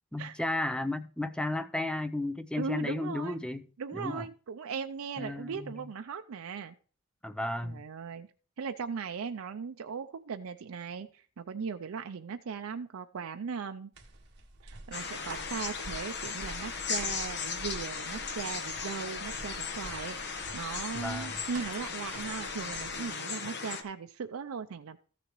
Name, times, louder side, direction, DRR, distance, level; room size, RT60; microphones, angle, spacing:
voice 1, 0.1-3.7 3.9-4.2 5.2-5.9 7.2-7.8 20.9-21.4, left 1 dB, 5° left, 0.5 m, -34 dB
voice 2, 2.6-3.4 3.8-6.8 7.6-8.3 8.6-13.9 14.6-25.0, right 6 dB, 75° right, 0.5 m, -38 dB
sound 1, 13.9-23.1, right 2 dB, 55° right, 1.6 m, -48 dB
sound 2, 14.9-23.8, left 5 dB, 55° left, 0.9 m, -37 dB
14.0 x 6.8 x 3.0 m
head